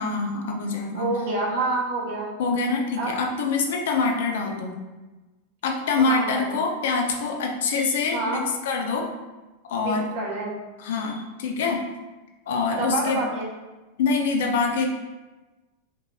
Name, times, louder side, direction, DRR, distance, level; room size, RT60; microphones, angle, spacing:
voice 1, 0.0-1.1 2.4-4.7 5.6-8.4 8.7-9.1 9.7-10.0 10.8-11.8 12.5-13.3 14.0-14.9, left 4 dB, 75° left, 2 dB, 0.8 m, -25 dB
voice 2, 0.9-2.3 3.0-3.2 6.0-6.6 8.1-8.5 9.8-10.6 12.7-13.5, right 2 dB, 65° right, -4 dB, 1.4 m, -28 dB
6.1 x 2.6 x 2.7 m, 1.2 s
supercardioid pair, 135°, 0 cm